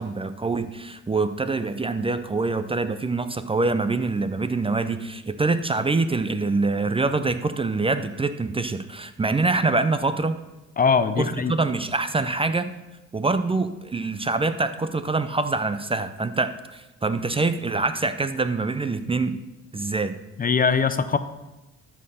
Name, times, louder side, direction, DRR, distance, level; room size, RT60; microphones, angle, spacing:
voice 1, 0.0-10.3 11.2-12.7 13.1-19.4 19.7-20.1, right 3 dB, 20° right, 10 dB, 0.5 m, -25 dB
voice 2, 10.8-11.5 20.4-21.2, left 5 dB, 30° left, 12 dB, 0.5 m, -21 dB
12.5 x 4.4 x 5.6 m, 1.1 s
cardioid pair, 90°, 30 cm